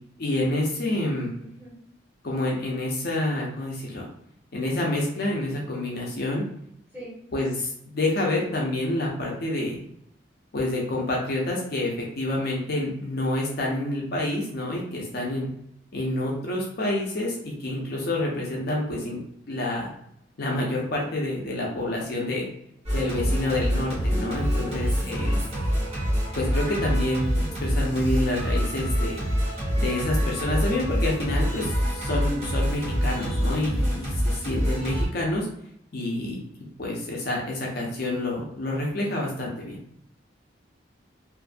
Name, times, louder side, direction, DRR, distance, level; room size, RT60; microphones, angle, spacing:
voice 1, 0.2-1.3 2.2-4.1 4.5-6.4 7.3-9.8 10.5-15.5 15.9-19.2 19.5-19.9 20.4-22.5 22.9-25.4 26.4-29.2 29.8-35.5 35.9-36.4 36.8-39.8, left 1 dB, 55° left, -2 dB, 0.6 m, -28 dB
voice 2, 1.4-1.7 6.9-7.2 23.6-24.0 24.5-25.5 33.8-34.0, right 1 dB, 10° right, -9 dB, 1.4 m, -45 dB
Singing, 22.8-35.1, equal, 35° right, 1.0 m, -26 dB
2.5 x 2.4 x 2.5 m, 0.73 s
head